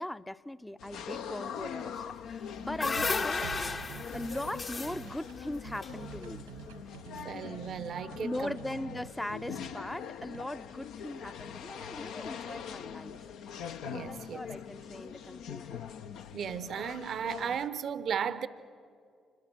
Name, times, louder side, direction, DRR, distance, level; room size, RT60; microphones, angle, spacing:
voice 1, 0.0-3.5 4.1-6.4 8.2-13.3 14.0-15.8, left 1 dB, 10° left, 0.6 m, -40 dB
sound 1, 0.8-17.7, left 8 dB, 65° left, 0.6 m, -43 dB
sound 2, 2.3-6.6, left 4 dB, 40° left, 0.9 m, -35 dB
sound 3, 2.7-9.8 10.2-10.4, right 8 dB, 85° right, 1.4 m, -47 dB
voice 2, 7.2-8.6 13.8-14.4 16.3-18.5, right 7 dB, 55° right, 0.7 m, -35 dB
26.5 x 21.0 x 6.0 m
figure-of-eight pair, 40°, 0 cm